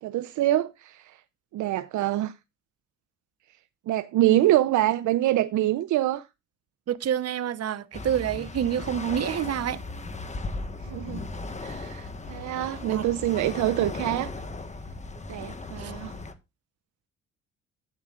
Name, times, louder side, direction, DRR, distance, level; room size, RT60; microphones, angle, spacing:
voice 1, 0.0-1.1 1.5-2.3 3.9-6.2 10.8-11.3 11.6-14.3 15.3-16.1, right 14 dB, 75° right, 0.6 m, -25 dB
voice 2, 6.9-9.8 12.8-13.0 15.8-15.9, right 9 dB, 55° right, 1.0 m, -28 dB
sound 1, 7.9-16.3, left 3 dB, 25° left, 1.4 m, -37 dB
13.0 x 9.7 x 2.4 m
cardioid pair, 90°, 30 cm